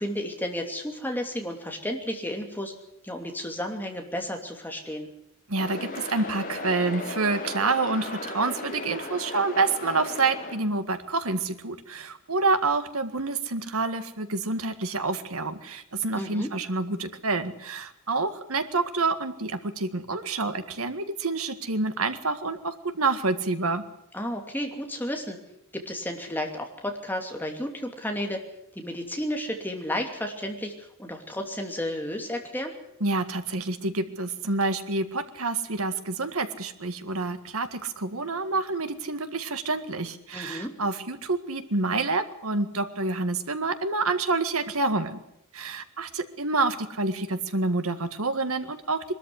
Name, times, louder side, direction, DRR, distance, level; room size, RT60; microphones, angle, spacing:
voice 1, 0.0-2.7 3.0-5.1 16.1-16.5 24.1-25.4 25.7-28.4 28.7-32.7 40.3-40.7, left 1 dB, 10° left, 3 dB, 2.8 m, -32 dB
voice 2, 5.5-23.8 33.0-45.2 45.5-49.0, right 3 dB, 75° right, 9 dB, 1.8 m, -28 dB
sound 1, 5.6-10.6, left 2 dB, 40° left, 4.7 m, -36 dB
22.0 x 13.5 x 9.8 m, 0.77 s
head